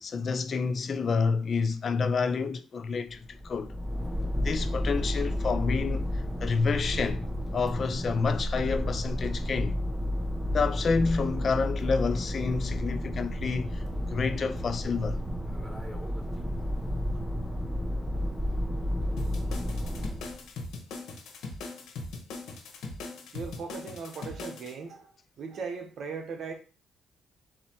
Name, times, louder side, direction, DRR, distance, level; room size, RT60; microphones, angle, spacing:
voice 1, 0.0-3.7 4.4-7.2 7.5-9.8 10.5-13.8 14.1-15.2, left 5 dB, 45° left, 0.5 m, -29 dB
sound 1, 3.1-20.4, equal, 5° right, 1.0 m, -31 dB
sound 2, 19.2-24.7, left 3 dB, 80° left, 1.1 m, -40 dB
voice 2, 23.3-25.1 25.4-26.5, right 5 dB, 60° right, 1.1 m, -38 dB
4.1 x 2.9 x 4.5 m
cardioid pair, 90°, 0 cm